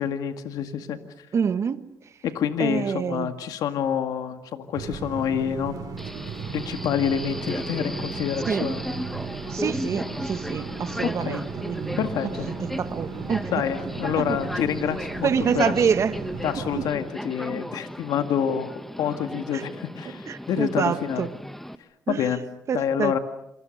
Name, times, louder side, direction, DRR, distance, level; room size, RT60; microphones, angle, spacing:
voice 1, 0.0-1.3 2.2-5.8 6.5-8.8 11.2-11.4 12.0-12.5 13.5-15.7 16.4-21.3 22.1-22.4 22.7-23.2, left 8 dB, 80° left, 2.0 m, -27 dB
voice 2, 1.3-1.8 2.6-3.3 8.5-8.7 9.5-12.1 12.8-13.5 14.2-14.4 15.2-16.2 16.8-16.9 19.5-19.6 20.3-21.3 22.1-22.2 22.7-23.1, right 7 dB, 50° right, 1.5 m, -26 dB
sound 1, 4.7-16.9, right 5 dB, 75° right, 4.0 m, -36 dB
Subway metro underground, 6.0-21.7, equal, 5° left, 1.3 m, -35 dB
28.0 x 28.0 x 6.6 m
cardioid pair, 105°, 6 cm